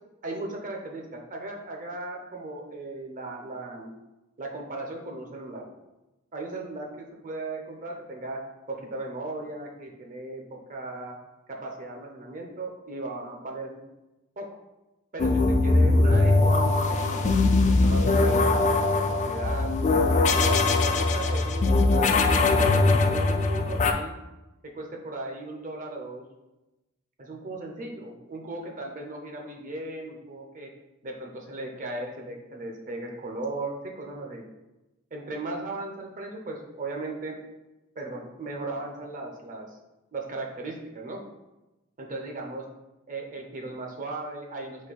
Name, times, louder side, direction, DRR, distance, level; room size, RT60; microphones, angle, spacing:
voice 1, 0.2-3.9 4.4-5.6 6.3-8.4 8.7-11.2 11.5-13.8 14.4-14.5 15.1-19.7 20.1-24.1 24.7-26.2 27.2-30.7 31.0-34.4 35.1-37.4 38.0-39.8 40.1-41.2 42.0-42.6 43.1-44.9, right 2 dB, 40° right, 1 dB, 0.6 m, -37 dB
sound 1, 15.2-23.9, left 3 dB, 35° left, 0.3 m, -21 dB
4.2 x 2.6 x 4.0 m, 1.0 s
head